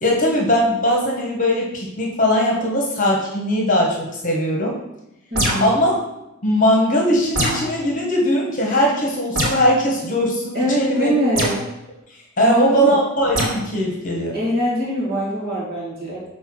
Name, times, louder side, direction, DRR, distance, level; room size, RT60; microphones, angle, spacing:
voice 1, 0.0-4.8 5.6-6.0 6.4-11.1 12.4-14.4, equal, 35° left, -1 dB, 1.3 m, -19 dB
voice 2, 5.3-5.7 10.5-11.5 12.4-12.9 14.3-16.3, equal, 45° right, -6 dB, 2.3 m, -23 dB
sound 1, 5.3-5.8 7.3-7.7 9.4-9.7 11.4-11.6 13.3-13.6, equal, 80° right, 3.2 m, -22 dB
6.7 x 4.5 x 6.2 m, 0.90 s
head